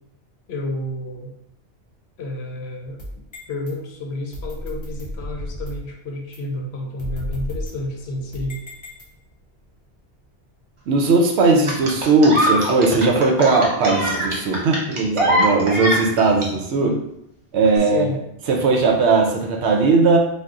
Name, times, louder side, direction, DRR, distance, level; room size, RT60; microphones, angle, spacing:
voice 1, 0.5-1.3 2.2-3.0 3.5-8.6 16.8-17.0 17.8-18.2, left 1 dB, 70° left, 1 dB, 0.8 m, -30 dB
sound 1, 2.8-3.7 4.3-5.9 6.3-6.4 7.0-9.5, left 1 dB, 40° left, 0.4 m, -33 dB
voice 2, 10.9-16.9 17.5-18.1 18.5-20.2, right 3 dB, 75° right, 2 dB, 0.8 m, -18 dB
Mum clap, 11.7-16.5 17.7-17.8, equal, 40° right, 0.5 m, -22 dB
2.6 x 2.3 x 3.5 m, 0.77 s
omnidirectional pair, 1.2 m